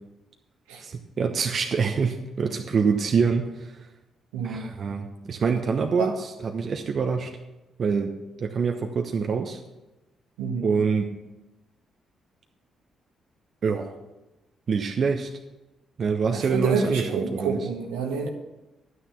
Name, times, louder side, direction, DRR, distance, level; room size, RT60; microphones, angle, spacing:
voice 1, 0.8-3.9 4.4-7.3 7.8-8.1 8.4-9.6 10.6-11.1 13.6-13.9 14.7-15.3 16.0-17.6, right 5 dB, 50° right, 4 dB, 1.0 m, -25 dB
voice 2, 4.3-4.7 6.0-6.2 10.4-10.7 16.3-18.3, right 4 dB, 80° right, 2 dB, 1.4 m, -28 dB
11.0 x 9.5 x 5.8 m, 1.0 s
hypercardioid pair, 40°, 0 cm